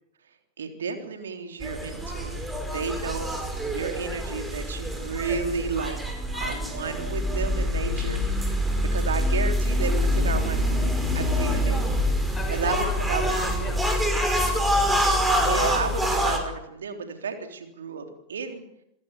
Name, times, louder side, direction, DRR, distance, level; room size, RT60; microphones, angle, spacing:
voice 1, 0.6-6.0 6.3-8.5 8.9-11.8 12.5-13.7 15.3-18.6, right 5 dB, 65° right, 6 dB, 3.5 m, -32 dB
sound 1, 1.6-16.4, equal, 5° right, 5.2 m, -25 dB
voice 2, 11.7-14.6, left 2 dB, 15° left, 4 dB, 6.4 m, -39 dB
27.0 x 16.5 x 8.2 m, 0.81 s
figure-of-eight pair, 90°, 0 cm